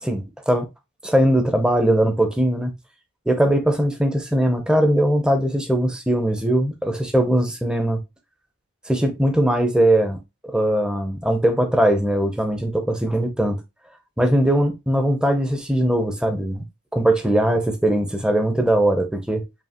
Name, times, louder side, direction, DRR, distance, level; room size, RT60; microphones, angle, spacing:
voice 1, 0.0-0.7 1.0-2.7 3.3-8.0 8.9-10.2 10.5-13.6 14.2-16.6 16.9-19.4, right 1 dB, 5° right, 0.6 m, -20 dB
4.8 x 2.8 x 2.8 m
head